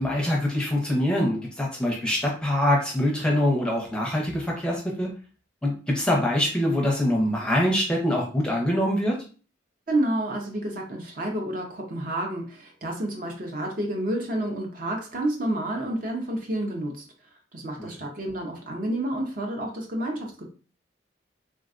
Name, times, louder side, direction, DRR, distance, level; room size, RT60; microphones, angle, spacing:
voice 1, 0.0-5.1 5.6-9.2 17.8-17.9, left 1 dB, 5° left, -3 dB, 0.6 m, -24 dB
voice 2, 9.9-17.0 17.5-20.4, right 1 dB, 45° right, 1 dB, 0.6 m, -29 dB
3.4 x 2.2 x 2.4 m, 0.38 s
head